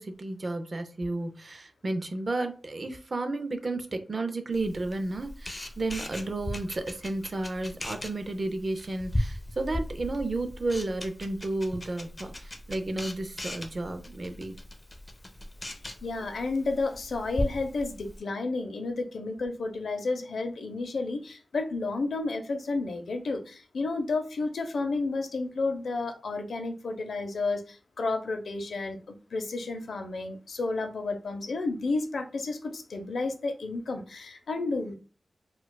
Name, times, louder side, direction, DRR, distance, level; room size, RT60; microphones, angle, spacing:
voice 1, 0.0-14.6, right 2 dB, 40° right, 0.5 m, -32 dB
Camera, 4.5-18.2, left 1 dB, 20° left, 0.5 m, -38 dB
voice 2, 16.0-34.9, left 3 dB, 75° left, 0.5 m, -31 dB
4.5 x 2.3 x 2.2 m
wide cardioid pair, 120°, 0 cm